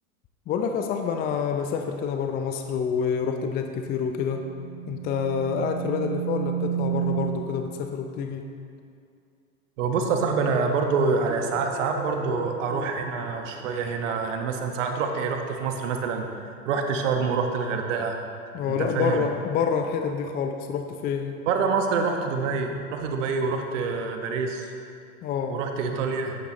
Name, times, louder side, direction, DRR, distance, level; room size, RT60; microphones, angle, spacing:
voice 1, 0.5-4.5 4.9-8.5 18.5-21.4 25.2-25.6, left 6 dB, 20° left, 5 dB, 0.5 m, -27 dB
sound 1, 3.7-7.6, right 10 dB, 30° right, 0.4 m, -31 dB
voice 2, 9.8-16.2 16.6-18.2 18.7-19.2 21.5-24.7 25.5-26.3, right 5 dB, 55° right, 4 dB, 1.3 m, -26 dB
sound 2, 11.1-13.7, equal, 5° right, 2.3 m, -39 dB
13.0 x 9.5 x 3.0 m, 2.4 s
figure-of-eight pair, 90°, 44 cm